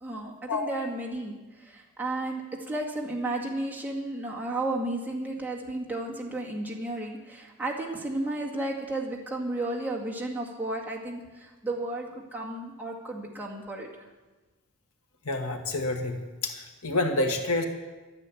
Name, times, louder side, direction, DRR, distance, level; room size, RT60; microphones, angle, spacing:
voice 1, 0.0-13.9, right 2 dB, 10° right, -2 dB, 2.0 m, -33 dB
voice 2, 15.2-16.2 16.4-17.6, left 2 dB, 70° left, 4 dB, 1.6 m, -28 dB
12.5 x 9.7 x 8.4 m, 1.2 s
head